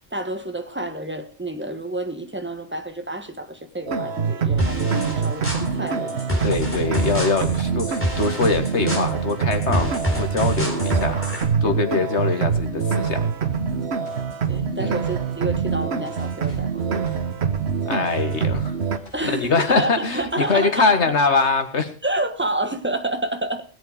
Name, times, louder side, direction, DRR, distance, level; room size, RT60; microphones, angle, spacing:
voice 1, 0.1-6.4 14.5-17.1 19.1-20.9 22.0-23.6, right 1 dB, 10° right, 1.3 m, -29 dB
sound 1, 3.9-19.0, right 6 dB, 75° right, 1.4 m, -25 dB
sound 2, 4.6-11.4, equal, 10° left, 4.0 m, -28 dB
voice 2, 6.4-11.2 11.6-13.2 14.8-15.0 17.9-18.7 19.2-21.9, left 4 dB, 80° left, 2.0 m, -23 dB
sound 3, 12.6-20.6, left 2 dB, 55° left, 4.5 m, -48 dB
20.0 x 8.1 x 5.0 m
omnidirectional pair, 1.1 m